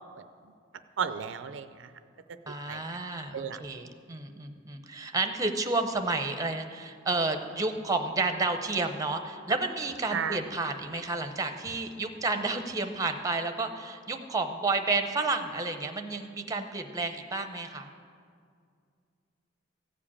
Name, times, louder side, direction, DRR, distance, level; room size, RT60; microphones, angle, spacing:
voice 1, 1.0-1.7 2.7-2.8 3.3-3.6 10.1-10.4, right 7 dB, 75° right, 11 dB, 0.5 m, -32 dB
voice 2, 2.5-17.9, right 3 dB, 20° right, 7 dB, 0.7 m, -31 dB
15.0 x 5.0 x 8.5 m, 2.2 s
head